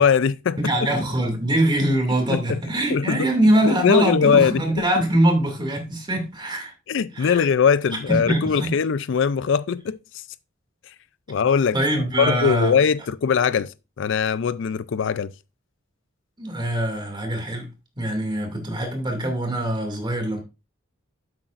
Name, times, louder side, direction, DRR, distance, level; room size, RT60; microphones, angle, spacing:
voice 1, 0.0-0.9 2.3-2.6 2.9-3.3 3.7-4.8 6.9-10.0 11.3-11.8 12.2-15.3, left 6 dB, 65° left, 0.4 m, -21 dB
voice 2, 0.6-6.7 7.1-7.5 7.9-8.7 11.7-12.8 16.4-17.7 18.0-20.4, right 1 dB, 20° right, 2.4 m, -23 dB
10.0 x 7.9 x 2.5 m
head